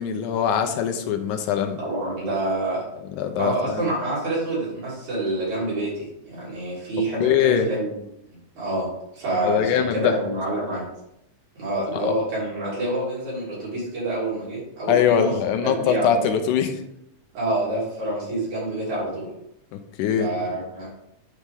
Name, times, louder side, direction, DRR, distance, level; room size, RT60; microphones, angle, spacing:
voice 1, 0.0-1.8 3.2-3.9 7.2-7.7 9.4-10.2 11.9-12.1 14.9-16.8 19.7-20.3, left 8 dB, 80° left, 6 dB, 2.1 m, -22 dB
voice 2, 1.8-2.8 3.4-7.9 8.6-8.9 9.1-10.9 11.6-15.3 15.6-16.3 17.3-19.3 20.2-20.9, right 1 dB, 65° right, -7 dB, 4.2 m, -27 dB
9.4 x 4.3 x 3.5 m, 0.82 s
omnidirectional pair, 3.6 m